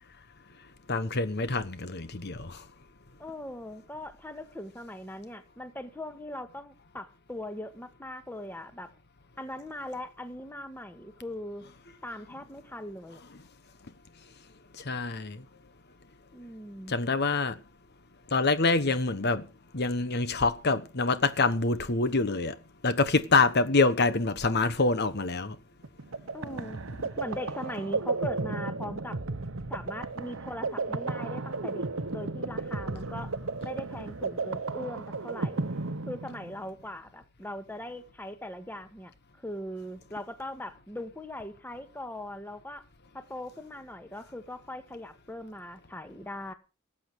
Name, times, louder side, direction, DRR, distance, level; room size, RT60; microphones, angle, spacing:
voice 1, 0.9-2.6 14.7-15.4 16.9-17.6 18.3-19.5 19.7-22.6 22.8-25.6 26.5-26.7, left 3 dB, 55° left, 1.2 m, -26 dB
voice 2, 3.2-8.9 9.4-11.6 12.0-13.2 16.3-17.0 26.3-26.8 27.2-29.2 29.7-31.8 32.1-33.3 33.6-35.6 36.1-39.1 39.4-42.8 43.1-46.5, left 1 dB, 10° left, 1.7 m, -40 dB
sound 1, 25.8-36.7, right 3 dB, 75° right, 1.0 m, -34 dB
19.0 x 8.7 x 6.3 m
head